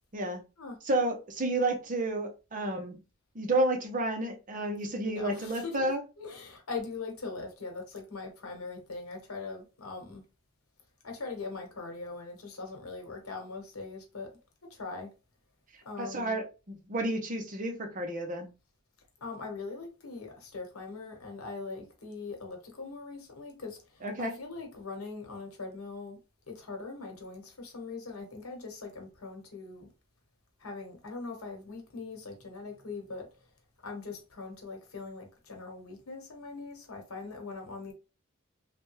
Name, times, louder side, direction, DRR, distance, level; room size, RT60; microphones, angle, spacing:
voice 1, 0.1-0.4 0.8-3.0 3.3-6.0 16.0-16.4 16.9-18.5 24.0-24.3, right 2 dB, 35° right, 0.6 m, -30 dB
voice 2, 5.0-5.9 6.2-10.2 11.0-14.3 14.7-15.1 15.8-16.4 19.2-26.2 26.5-29.9 30.6-33.3 33.8-37.9, left 4 dB, 80° left, 1.1 m, -41 dB
3.3 x 2.1 x 3.0 m
head